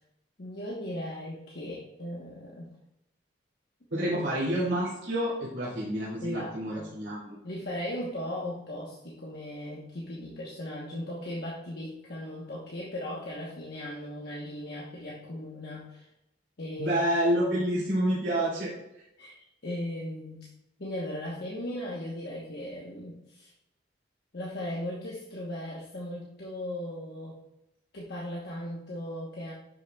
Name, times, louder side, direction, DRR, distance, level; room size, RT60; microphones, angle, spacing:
voice 1, 0.4-2.6 4.0-4.2 6.2-7.0 7.4-16.1 16.6-16.9 19.2-20.5 20.8-23.5 24.3-27.4 27.9-29.5, left 1 dB, 55° left, -4 dB, 1.1 m, -37 dB
voice 2, 3.9-7.3 16.8-19.0, right 1 dB, 75° right, -9 dB, 2.6 m, -28 dB
10.5 x 6.0 x 2.3 m, 0.84 s
head